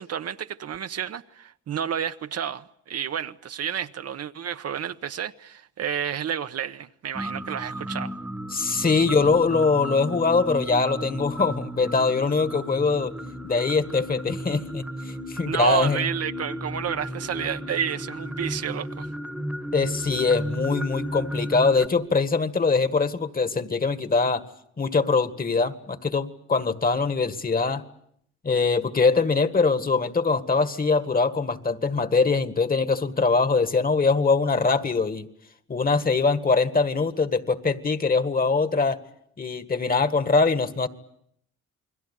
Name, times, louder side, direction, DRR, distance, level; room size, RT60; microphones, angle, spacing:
voice 1, 0.0-8.1 15.4-19.1, right 9 dB, 55° right, 1.0 m, -30 dB
sound 1, 7.1-21.9, equal, 5° right, 1.5 m, -34 dB
voice 2, 8.5-13.1 13.4-16.1 19.7-24.4 24.8-27.8 28.4-35.3 35.7-39.0 39.4-40.9, left 4 dB, 30° left, 1.9 m, -23 dB
29.0 x 21.5 x 8.3 m
cardioid pair, 90°, 30 cm